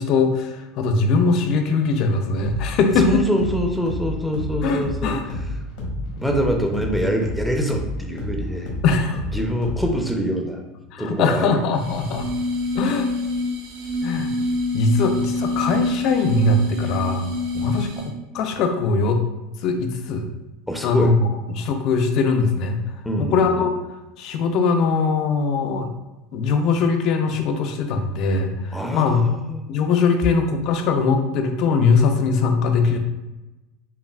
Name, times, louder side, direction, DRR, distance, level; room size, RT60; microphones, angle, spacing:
voice 1, 0.0-3.2 4.6-5.2 8.8-9.2 10.9-12.3 12.7-13.1 14.0-14.3 14.7-17.3 17.6-19.2 19.6-20.3 20.8-22.8 23.2-23.7 24.2-25.9 26.3-29.2 29.7-33.0, left 4 dB, 50° left, 5 dB, 0.5 m, -21 dB
sound 1, 2.4-10.1, left 1 dB, 70° left, 1.2 m, -30 dB
voice 2, 3.0-5.1 5.5-5.6 5.9-8.7 9.3-10.6 11.0-11.6 17.5-17.7 20.7-21.2 23.0-23.7 28.7-29.6, right 1 dB, ahead, 2 dB, 0.5 m, -25 dB
sound 2, 11.7-18.3, left 2 dB, 80° right, 0.6 m, -26 dB
5.5 x 2.4 x 2.3 m, 1.0 s
supercardioid pair, 130°, 0 cm